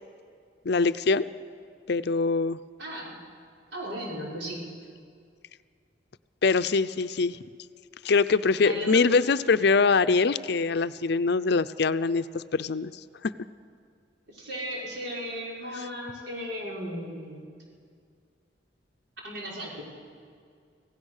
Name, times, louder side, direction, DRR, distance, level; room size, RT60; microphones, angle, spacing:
voice 1, 0.6-1.2 1.9-2.6 6.4-7.4 8.0-12.9 13.2-13.3, left 4 dB, 65° left, 14 dB, 0.5 m, -23 dB
voice 2, 2.8-3.2 3.7-4.6 8.6-9.3 14.3-17.4 19.2-19.8, equal, 75° right, -4 dB, 5.6 m, -35 dB
26.0 x 16.5 x 6.5 m, 2.2 s
head